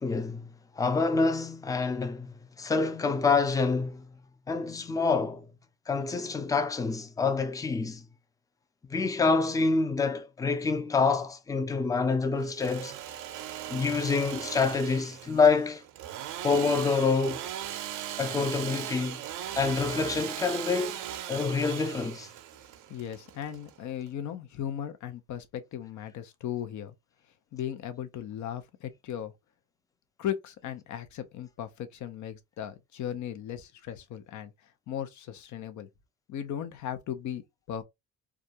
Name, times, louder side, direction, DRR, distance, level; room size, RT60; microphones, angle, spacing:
voice 1, 0.0-4.1 4.5-5.5 5.9-8.1 8.9-13.0 13.7-15.8 16.4-17.5 18.2-19.2 19.6-21.0 21.3-22.3, left 4 dB, 10° left, 0.4 m, -27 dB
Engine / Sawing, 12.4-24.1, right 11 dB, 80° right, 0.5 m, -38 dB
voice 2, 22.9-26.9 27.5-29.3 30.2-34.5 34.9-35.9 36.3-37.4 37.7-37.8, left 10 dB, 70° left, 0.7 m, -37 dB
2.4 x 2.3 x 2.7 m
cardioid pair, 90°, 30 cm